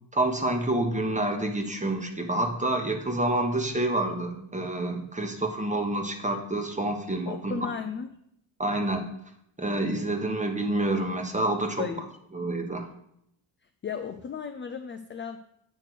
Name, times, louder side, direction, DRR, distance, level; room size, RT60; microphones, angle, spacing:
voice 1, 0.1-7.6 8.6-9.1 9.6-11.9 12.3-12.9, right 2 dB, 15° right, 4 dB, 1.0 m, -28 dB
voice 2, 7.3-8.1 11.8-12.1 13.8-15.4, left 6 dB, 25° left, 7 dB, 0.4 m, -34 dB
8.2 x 3.2 x 6.0 m, 0.75 s
cardioid pair, 90°, 47 cm